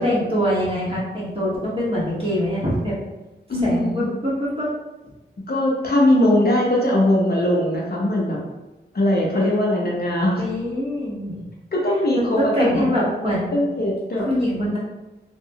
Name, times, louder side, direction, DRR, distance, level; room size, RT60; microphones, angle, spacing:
voice 1, 0.0-2.9 3.6-4.7 10.4-11.3 12.2-13.5 14.1-14.8, equal, 30° right, -7 dB, 1.3 m, -24 dB
voice 2, 3.5-4.2 5.5-8.4 8.9-10.4 11.7-12.9 13.5-14.3, left 1 dB, 55° left, -2 dB, 0.7 m, -20 dB
2.7 x 2.2 x 2.7 m, 1.1 s
cardioid pair, 45°, 20 cm